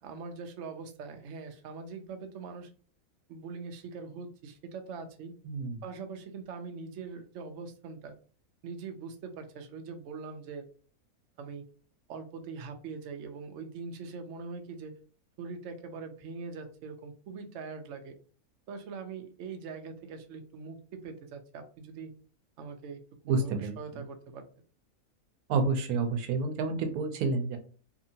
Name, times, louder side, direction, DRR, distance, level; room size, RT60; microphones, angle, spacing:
voice 1, 0.0-2.7 3.3-5.3 5.8-8.2 8.6-10.7 11.4-11.6 12.1-14.9 15.4-18.2 18.7-22.1 22.6-23.0 23.3-24.4, right 5 dB, 65° right, 5 dB, 0.8 m, -42 dB
voice 2, 5.5-5.8 23.3-23.8 25.5-27.6, right 4 dB, 90° right, 6 dB, 1.1 m, -29 dB
2.7 x 2.7 x 2.7 m, 0.40 s
omnidirectional pair, 1.5 m